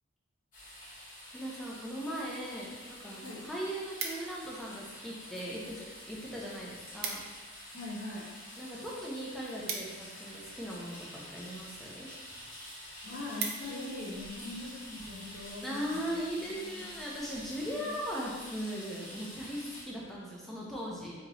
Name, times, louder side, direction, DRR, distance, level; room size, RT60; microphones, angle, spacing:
sound 1, 0.5-19.8, left 1 dB, 40° left, 1.4 m, -48 dB
voice 1, 1.3-7.2 8.6-12.1 14.4-14.5 15.6-21.1, equal, ahead, -5 dB, 0.6 m, -39 dB
sound 2, 4.0-4.6 5.3-5.8 6.1-6.2 6.5-6.6 6.8-7.4 7.8-10.6 11.4-11.7 12.2-12.3 12.6-12.7 13.0-14.0 14.5-14.7, right 5 dB, 45° right, 0.5 m, -40 dB
voice 2, 7.7-8.3 13.0-16.1 16.5-16.8 17.7-17.9, left 2 dB, 60° left, -7 dB, 1.4 m, -42 dB
4.0 x 2.9 x 4.1 m, 1.3 s
head